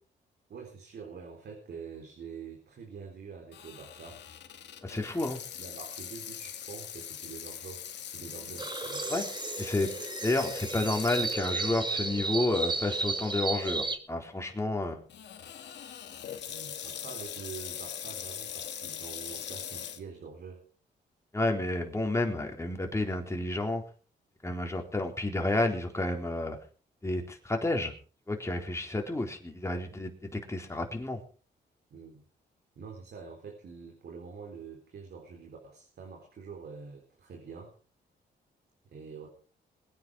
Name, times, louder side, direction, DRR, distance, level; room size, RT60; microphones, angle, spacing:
voice 1, 0.5-4.2 5.5-7.9 8.1-9.1 16.5-20.6 31.9-32.2 32.8-37.7 38.9-39.3, right 5 dB, 65° right, 2 dB, 4.1 m, -46 dB
Water tap faucet / Sink (filling or washing), 3.5-11.9 12.4-12.5 13.2-13.5 15.1-20.0, left 9 dB, 75° left, 2.2 m, -42 dB
voice 2, 4.8-5.4 9.1-9.2 9.6-9.9 10.2-15.0 21.3-23.8 24.4-26.6 27.0-27.9 28.3-31.2, left 2 dB, 15° left, 2 dB, 4.0 m, -30 dB
sound 1, 8.6-14.0, right 3 dB, 25° right, 1.9 m, -33 dB
21.5 x 9.7 x 4.9 m, 0.39 s
cardioid pair, 85°, 18 cm